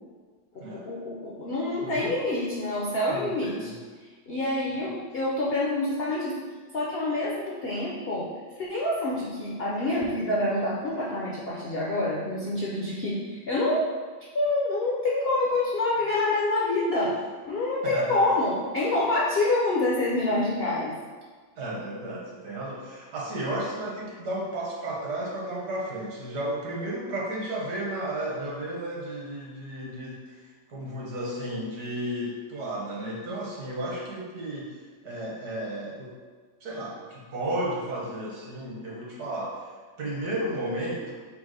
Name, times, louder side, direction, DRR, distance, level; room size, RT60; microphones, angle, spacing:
voice 1, 0.7-3.7 4.3-6.4 6.7-8.3 8.6-13.9 14.3-17.1 17.5-20.9, left 2 dB, 65° left, -5 dB, 0.6 m, -27 dB
voice 2, 1.8-2.3 3.1-3.8 4.7-4.9 17.8-18.4 21.6-34.7 35.0-36.1 36.6-39.7 40.0-41.1, right 1 dB, 70° right, -3 dB, 1.5 m, -33 dB
5.2 x 2.0 x 4.7 m, 1.5 s
omnidirectional pair, 1.8 m